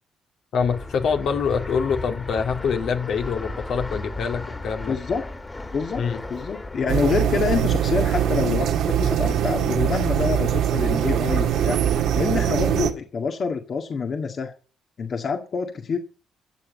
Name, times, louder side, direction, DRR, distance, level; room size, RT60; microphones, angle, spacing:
voice 1, 0.5-5.0 6.0-6.2, left 6 dB, 70° left, 4 dB, 2.3 m, -25 dB
Fixed-wing aircraft airplane, 0.6-9.3, left 2 dB, 20° left, 2.4 m, -36 dB
voice 2, 4.8-5.2 5.6-11.8 12.1-14.5 15.0-16.0, left 5 dB, 50° left, 4 dB, 1.9 m, -26 dB
sound 1, 6.9-12.9, right 10 dB, 85° right, 2.0 m, -22 dB
13.5 x 7.3 x 9.3 m, 0.38 s
cardioid pair, 90°, 0 cm